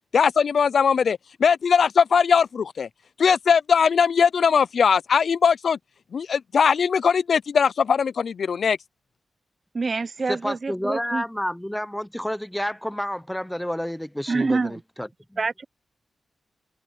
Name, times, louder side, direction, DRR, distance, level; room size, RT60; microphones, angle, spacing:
voice 1, 0.1-2.9 3.2-5.8 6.1-8.8, left 6 dB, 70° left, 0.3 m, -20 dB
voice 2, 9.7-11.2 14.3-14.8 15.4-15.6, right 4 dB, 40° right, 0.6 m, -26 dB
voice 3, 10.3-15.4, equal, 5° left, 0.8 m, -30 dB
wide cardioid pair, 95°, 0 cm